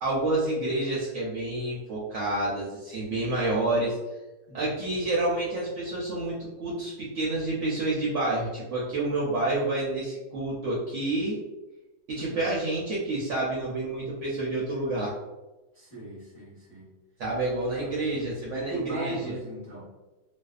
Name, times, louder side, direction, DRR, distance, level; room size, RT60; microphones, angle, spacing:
voice 1, 0.0-4.0 4.5-11.4 12.1-15.1 17.2-19.4, right 2 dB, 65° right, -6 dB, 0.8 m, -29 dB
voice 2, 4.5-5.0 12.1-12.4 15.7-16.9 17.7-18.3 18.5-19.8, right 2 dB, 20° left, -9 dB, 0.8 m, -39 dB
2.5 x 2.2 x 2.3 m, 1.1 s
omnidirectional pair, 1.6 m